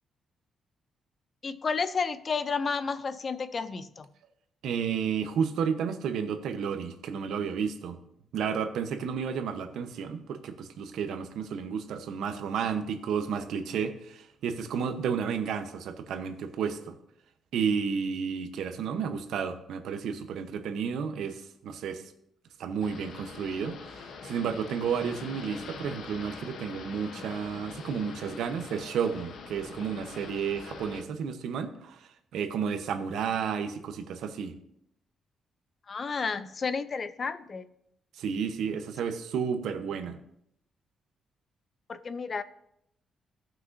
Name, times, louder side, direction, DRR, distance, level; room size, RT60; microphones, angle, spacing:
voice 1, 1.4-4.1 35.9-37.7 41.9-42.4, left 5 dB, 30° left, 14 dB, 0.4 m, -31 dB
voice 2, 4.6-8.0 8.3-16.9 17.5-22.0 22.6-34.5 38.1-40.2, right 6 dB, 80° right, 8 dB, 0.9 m, -32 dB
sound 1, 22.8-31.0, left 5 dB, 65° left, 0.9 m, -44 dB
17.0 x 6.0 x 2.7 m, 0.76 s
cardioid pair, 160°, 0 cm